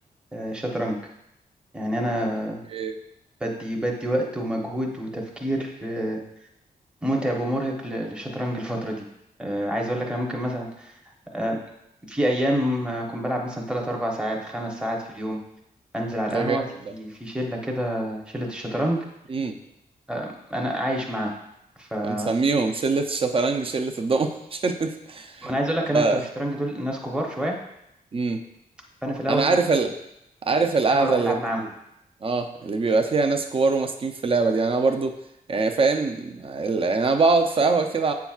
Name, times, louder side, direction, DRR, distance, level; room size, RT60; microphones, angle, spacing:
voice 1, 0.3-1.0 1.7-2.6 3.4-6.2 7.0-9.1 9.4-10.9 11.3-11.6 12.1-15.4 15.9-16.6 16.9-19.0 20.1-21.3 21.8-22.3 25.4-27.5 29.0-29.6 30.9-31.6, equal, 5° right, -1 dB, 0.8 m, -27 dB
voice 2, 16.3-16.6 19.3-19.6 22.0-25.5 25.9-26.2 28.1-28.4 29.3-29.9 30.4-31.7 32.2-35.1 35.5-38.1, right 4 dB, 35° right, 6 dB, 0.5 m, -23 dB
8.0 x 5.8 x 2.4 m, 0.82 s
wide cardioid pair, 140°, 16 cm